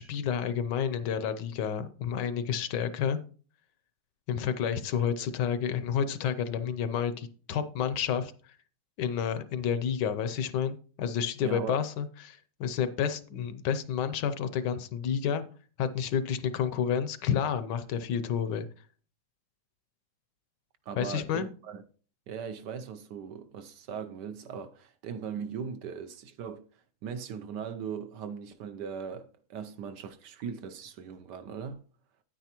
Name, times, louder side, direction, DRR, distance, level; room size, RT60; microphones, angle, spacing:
voice 1, 0.0-3.2 4.3-8.5 9.0-15.4 15.8-18.7 20.9-21.5, left 8 dB, 70° left, 1.2 m, -30 dB
voice 2, 11.4-11.8 20.9-21.8 22.3-26.7 27.0-31.8, right 7 dB, 70° right, 1.2 m, -39 dB
9.7 x 9.2 x 2.9 m
omnidirectional pair, 2.1 m